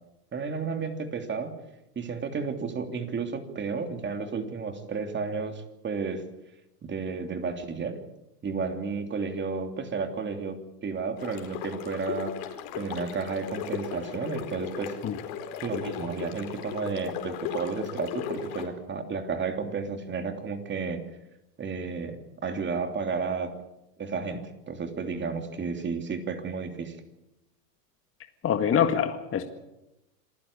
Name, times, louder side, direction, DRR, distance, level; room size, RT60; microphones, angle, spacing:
voice 1, 0.3-1.5 1.9-6.2 6.8-8.0 8.4-10.6 10.8-12.3 12.7-14.9 15.6-21.0 21.6-23.5 24.0-27.0, right 5 dB, 20° right, 6 dB, 3.1 m, -32 dB
sound 1, 11.2-18.7, left 8 dB, 55° left, 4.6 m, -36 dB
voice 2, 28.4-29.4, left 8 dB, 25° left, 6 dB, 1.9 m, -24 dB
27.0 x 15.5 x 8.6 m, 0.91 s
hypercardioid pair, 115°, 49 cm